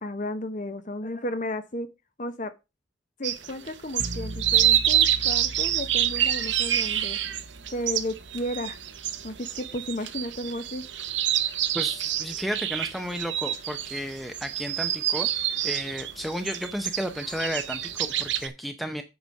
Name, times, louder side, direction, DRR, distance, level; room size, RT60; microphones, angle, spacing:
voice 1, 0.0-1.9 2.2-2.5 3.2-7.2 7.7-8.8 9.2-10.8, left 1 dB, 40° left, 0.8 m, -33 dB
sound 1, 3.2-18.5, right 11 dB, 70° right, 1.0 m, -27 dB
sound 2, 4.0-9.8, right 1 dB, 40° right, 0.9 m, -41 dB
voice 2, 11.7-19.0, equal, ahead, 0.6 m, -33 dB
8.1 x 5.0 x 6.3 m
head